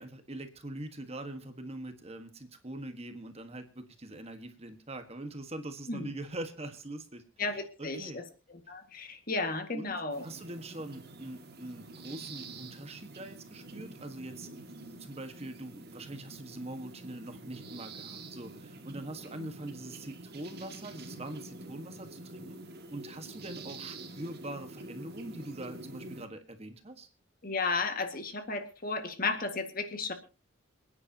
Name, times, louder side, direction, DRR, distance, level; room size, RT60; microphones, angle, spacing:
voice 1, 0.0-8.2 9.7-9.9 10.2-14.7 15.0-22.6 22.9-27.1, right 1 dB, 30° right, 7 dB, 1.5 m, -43 dB
voice 2, 7.4-8.2 8.7-10.2 19.3-19.5 27.4-30.1, left 3 dB, 45° left, 6 dB, 1.9 m, -33 dB
sound 1, 10.1-26.3, right 2 dB, 50° right, 2.1 m, -47 dB
27.5 x 9.9 x 2.9 m, 0.32 s
head